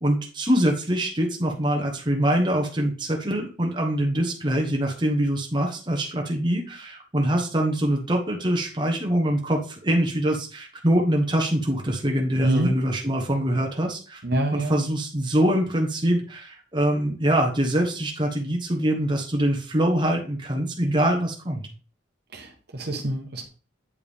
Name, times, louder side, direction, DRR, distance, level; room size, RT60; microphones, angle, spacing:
voice 1, 0.0-14.2 14.5-21.7, right 1 dB, 25° right, 1 dB, 1.1 m, -24 dB
voice 2, 12.3-12.7 14.2-14.7 22.3-23.5, right 1 dB, 55° right, 3 dB, 1.2 m, -25 dB
8.5 x 4.6 x 3.5 m, 0.37 s
head